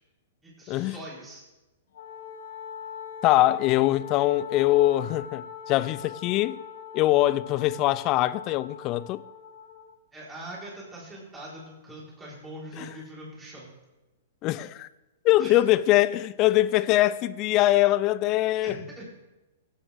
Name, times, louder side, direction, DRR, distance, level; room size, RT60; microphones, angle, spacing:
voice 1, 0.4-1.4 10.1-13.7 15.4-15.6 18.6-19.1, right 1 dB, 10° right, 4.1 m, -42 dB
Wind instrument woodwind instrument, 1.9-9.9, left 7 dB, 70° left, 2.0 m, -41 dB
voice 2, 3.2-6.6 6.9-9.2 12.8-12.9 14.4-14.9 15.2-18.8, left 15 dB, 35° left, 0.4 m, -23 dB
16.5 x 9.0 x 3.5 m
hypercardioid pair, 125°, 0 cm